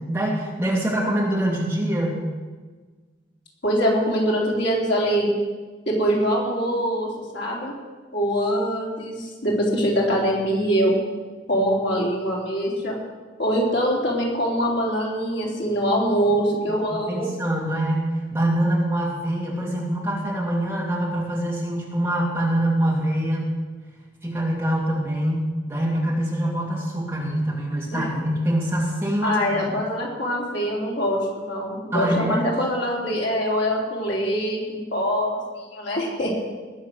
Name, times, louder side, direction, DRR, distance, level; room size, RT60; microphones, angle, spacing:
voice 1, 0.0-2.2 16.9-23.6 24.2-29.6 31.9-32.5, right 1 dB, 15° right, -4 dB, 2.5 m, -24 dB
voice 2, 3.6-5.3 5.9-7.1 7.3-7.7 8.1-10.9 11.5-13.0 13.4-17.3 27.9-28.1 29.2-36.4, equal, 70° left, -3 dB, 3.7 m, -23 dB
20.0 x 7.1 x 6.4 m, 1.4 s
head